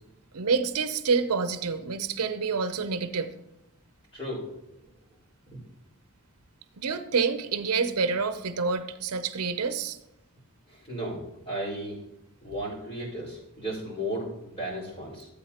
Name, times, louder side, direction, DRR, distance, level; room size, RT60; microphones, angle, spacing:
voice 1, 0.3-3.4 6.8-10.0, right 5 dB, 85° right, 0.7 m, -27 dB
voice 2, 4.1-4.5 5.5-5.6 10.7-12.0 12.4-14.3 14.6-15.3, equal, 25° left, 4.5 m, -34 dB
15.5 x 8.3 x 2.9 m
head